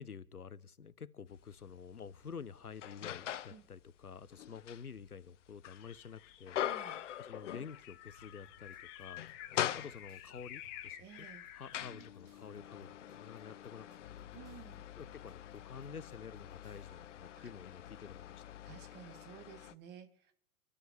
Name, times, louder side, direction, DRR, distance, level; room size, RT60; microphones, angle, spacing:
voice 1, 0.0-6.6 7.2-9.3 9.7-11.3 11.5-14.5 15.0-18.5, left 6 dB, 80° left, 18 dB, 1.0 m, -49 dB
sound 1, 1.4-1.5 2.0-3.6 4.0-8.1 8.4-8.6 9.0-10.4 11.1-19.7, left 11 dB, 55° left, 0.7 m, -43 dB
sound 2, 5.7-12.1, left 12 dB, 30° left, 1.2 m, -52 dB
voice 2, 6.6-7.0 11.0-11.4 11.9-12.1 14.3-14.8 17.3-17.5 18.6-20.3, right 9 dB, 25° right, 8 dB, 1.7 m, -54 dB
sound 3, 8.2-16.9, left 1 dB, 85° right, 4.1 m, -66 dB
29.5 x 12.5 x 3.4 m, 0.68 s
figure-of-eight pair, 105°, 44 cm